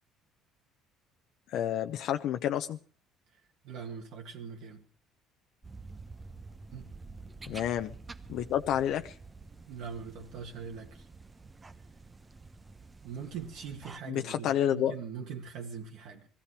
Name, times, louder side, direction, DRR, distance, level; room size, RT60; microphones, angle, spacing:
voice 1, 1.5-2.8 7.5-7.9 8.3-9.2 14.1-14.9, left 10 dB, 65° left, 0.9 m, -29 dB
voice 2, 3.3-4.8 6.7-6.9 9.7-11.1 13.0-16.3, right 6 dB, 70° right, 2.1 m, -42 dB
sound 1, 5.6-14.0, right 3 dB, 20° right, 1.0 m, -49 dB
19.5 x 15.0 x 4.9 m
supercardioid pair, 90°, 0 cm